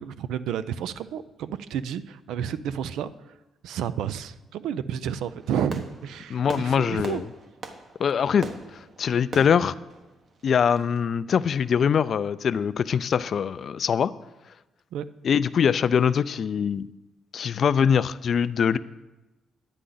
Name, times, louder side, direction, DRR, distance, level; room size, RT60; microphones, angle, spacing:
voice 1, 0.0-3.1 3.6-7.2 14.9-15.1, right 9 dB, 85° right, 14 dB, 0.4 m, -31 dB
Fireworks, 5.4-11.0, right 3 dB, 50° right, 1.1 m, -41 dB
voice 2, 6.3-7.2 8.0-8.5 9.0-9.7 10.4-14.1 15.2-16.9 17.3-18.8, left 7 dB, 55° left, 16 dB, 0.3 m, -23 dB
10.0 x 9.7 x 3.9 m, 1.0 s
cardioid pair, 90°, 0 cm